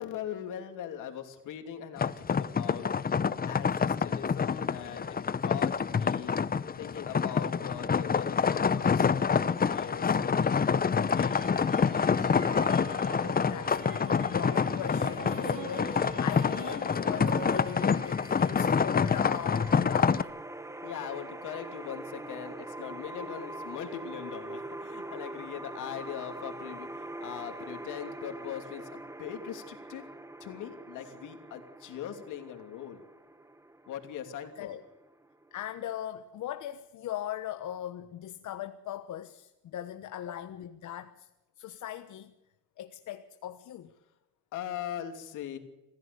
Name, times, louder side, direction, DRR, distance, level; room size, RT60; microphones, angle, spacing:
voice 1, 0.0-6.3 6.8-11.4 12.0-12.1 20.8-30.1 30.4-33.0 33.9-34.8 44.5-45.6, left 10 dB, 90° left, 6 dB, 2.9 m, -41 dB
sound 1, 2.0-20.2, left 6 dB, 30° left, 0.8 m, -27 dB
sound 2, 11.1-18.3, right 3 dB, 85° right, 5.9 m, -43 dB
voice 2, 13.5-20.3 34.6-34.8 35.5-41.3 41.6-42.3 42.8-43.9, left 11 dB, 75° left, 8 dB, 1.2 m, -39 dB
sound 3, 17.0-36.0, right 2 dB, 10° right, 1.3 m, -44 dB
26.0 x 15.5 x 6.9 m, 1.0 s
cardioid pair, 90°, 30 cm